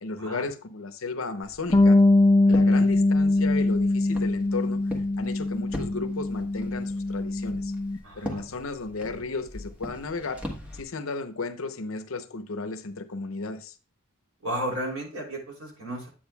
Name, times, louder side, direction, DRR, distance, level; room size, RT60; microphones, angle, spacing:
voice 1, 0.0-2.0 2.5-4.8 5.2-7.7 8.2-10.4 10.7-13.7, left 3 dB, 70° left, 0.8 m, -34 dB
Walk footsteps, 1.4-10.8, left 1 dB, 5° right, 1.2 m, -41 dB
Bass guitar, 1.7-8.0, left 2 dB, 20° left, 0.3 m, -22 dB
voice 2, 2.5-2.9 8.0-8.4 14.4-16.1, right 1 dB, 85° right, 3.2 m, -34 dB
8.8 x 8.7 x 2.3 m
head